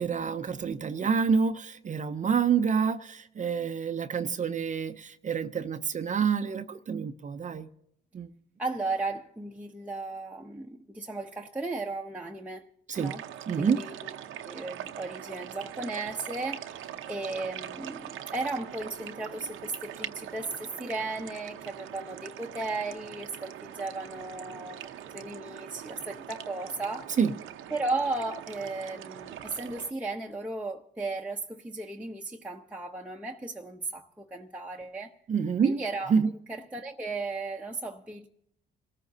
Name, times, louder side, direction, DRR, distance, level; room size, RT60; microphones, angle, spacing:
voice 1, 0.0-7.7 8.1-8.3 12.9-13.1 13.5-13.8 27.2-27.3 35.3-35.8 36.1-36.3, right 6 dB, 40° right, 0.6 m, -27 dB
voice 2, 8.6-12.7 13.0-13.2 13.6-14.1 14.5-24.8 25.1-27.1 27.7-35.1 35.6-36.1 36.5-38.3, right 3 dB, 5° right, 0.8 m, -35 dB
sound 1, 12.9-29.9, right 10 dB, 85° right, 0.8 m, -42 dB
27.0 x 14.0 x 2.8 m
cardioid pair, 90°, 20 cm